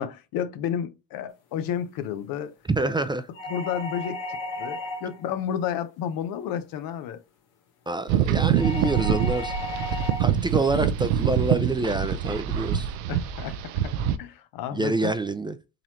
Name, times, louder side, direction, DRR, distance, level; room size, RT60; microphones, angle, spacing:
voice 1, 0.0-2.5 3.5-7.2 13.1-13.9 14.2-15.1, left 9 dB, 70° left, 0.7 m, -31 dB
voice 2, 2.7-3.3 7.9-9.5 9.9-12.9 14.7-15.6, right 2 dB, 15° right, 0.4 m, -27 dB
sound 1, 3.3-5.3 8.5-10.4, left 2 dB, 90° left, 1.2 m, -34 dB
sound 2, 8.1-14.2, right 9 dB, 85° right, 0.5 m, -25 dB
3.9 x 3.1 x 2.8 m
supercardioid pair, 80°, 35 cm